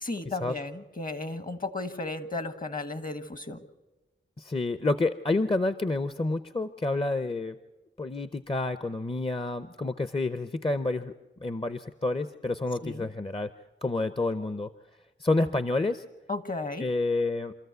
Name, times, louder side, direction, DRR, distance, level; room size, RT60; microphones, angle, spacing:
voice 1, 0.0-3.6 12.8-13.1 16.3-16.9, left 2 dB, 45° left, 12 dB, 1.3 m, -34 dB
voice 2, 4.4-7.6 8.0-11.1 11.4-13.5 13.8-14.7 15.2-16.0 16.8-17.5, left 2 dB, 25° left, 11 dB, 0.7 m, -29 dB
26.5 x 13.5 x 8.1 m, 1.1 s
cardioid pair, 45°, 21 cm